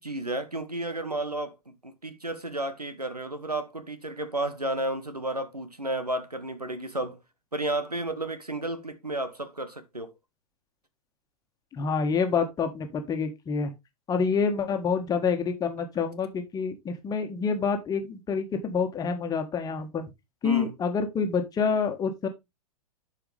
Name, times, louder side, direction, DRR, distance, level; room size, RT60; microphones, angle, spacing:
voice 1, 0.0-7.2 7.5-10.1 20.4-20.7, right 1 dB, 90° right, 1.3 m, -32 dB
voice 2, 11.7-13.7 14.1-20.1 20.4-22.3, left 5 dB, 20° left, 1.6 m, -27 dB
11.0 x 4.9 x 3.4 m
figure-of-eight pair, 100°, 19 cm